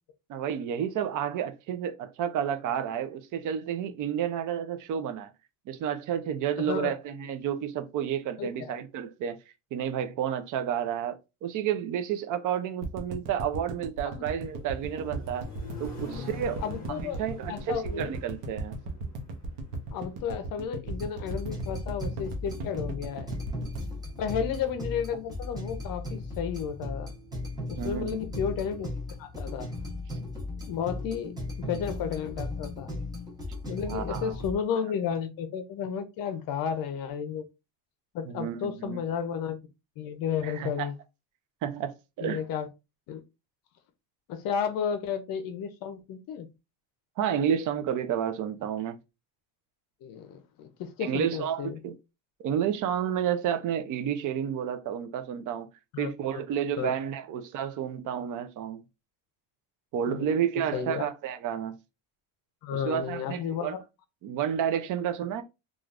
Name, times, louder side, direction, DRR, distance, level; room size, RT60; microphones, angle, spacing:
voice 1, 0.3-5.3 5.7-9.4 9.7-11.2 11.4-15.5 15.8-16.6 16.9-18.8 27.8-28.2 33.8-34.4 38.3-39.0 40.4-40.9 41.6-41.9 42.2-42.4 47.2-49.0 51.0-51.9 52.4-55.7 56.0-58.8 59.9-61.8 62.7-63.8 64.2-65.4, right 9 dB, 45° right, 0.5 m, -31 dB
voice 2, 6.6-6.9 8.4-8.8 14.0-14.2 16.6-17.2 17.5-18.1 19.9-23.3 24.2-27.1 27.7-29.7 30.7-31.3 31.6-32.9 33.6-37.4 38.1-39.6 40.0-40.9 42.2-42.7 43.1-43.2 44.3-46.5 50.0-51.8 55.9-56.1 56.8-56.9 60.1-60.3 60.7-61.0 62.6-63.8, left 7 dB, 50° left, 0.6 m, -32 dB
sound 1, 12.8-25.0 25.3-25.4 25.6-25.7, right 2 dB, 80° right, 0.8 m, -37 dB
Accelerating revving vroom, 14.3-20.3, left 4 dB, 20° left, 1.0 m, -44 dB
sound 2, 20.8-34.5, left 2 dB, 10° right, 0.8 m, -37 dB
3.2 x 2.4 x 2.4 m
cardioid pair, 160°, 43 cm